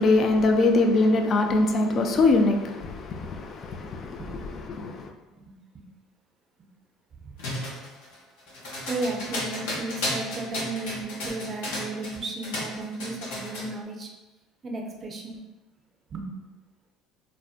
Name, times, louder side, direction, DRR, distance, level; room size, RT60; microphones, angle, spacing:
voice 1, 0.0-4.2 4.7-5.0, left 2 dB, 45° left, 0.3 m, -22 dB
voice 2, 5.3-5.9 7.2-7.3 8.9-14.1 14.6-15.4 16.1-16.3, right 2 dB, 35° right, 0.5 m, -34 dB
sound 1, 7.4-12.2 12.4-13.7, left 1 dB, 90° left, 0.8 m, -33 dB
2.5 x 2.1 x 2.4 m
supercardioid pair, 95°, 0 cm